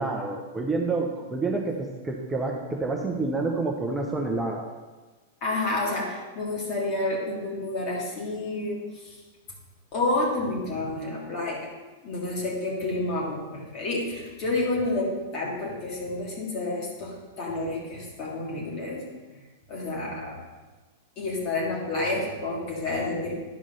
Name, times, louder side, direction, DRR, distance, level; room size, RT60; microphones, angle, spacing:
voice 1, 0.0-4.6, right 3 dB, 10° right, 0 dB, 0.9 m, -28 dB
voice 2, 5.4-9.2 9.9-11.7 12.0-19.0 19.7-20.4 21.2-23.3, left 2 dB, 35° left, -4 dB, 3.1 m, -29 dB
11.0 x 5.1 x 5.5 m, 1.2 s
figure-of-eight pair, 95°, 0 cm